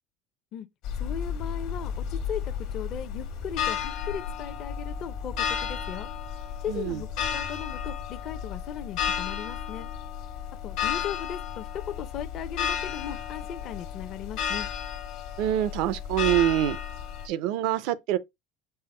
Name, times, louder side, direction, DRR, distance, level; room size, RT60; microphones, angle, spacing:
sound 1, 0.8-17.3, left 8 dB, 70° left, 1.2 m, -33 dB
voice 1, 0.9-6.1 6.6-9.9 10.6-14.7, left 9 dB, 50° left, 0.6 m, -37 dB
voice 2, 6.7-7.0 15.4-16.8 17.2-18.2, right 13 dB, 70° right, 0.5 m, -25 dB
5.6 x 2.1 x 4.2 m
supercardioid pair, 125°, 0 cm